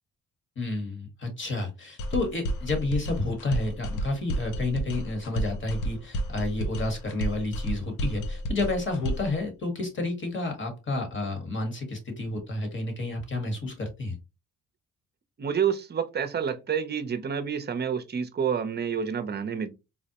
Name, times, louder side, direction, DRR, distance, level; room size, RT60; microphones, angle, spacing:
voice 1, 0.5-14.2, left 2 dB, 40° left, 1.4 m, -30 dB
sound 1, 2.0-9.4, right 1 dB, 80° left, 0.7 m, -31 dB
voice 2, 15.4-19.7, right 7 dB, 35° right, 0.6 m, -28 dB
4.1 x 2.1 x 2.8 m
cardioid pair, 90°, 30 cm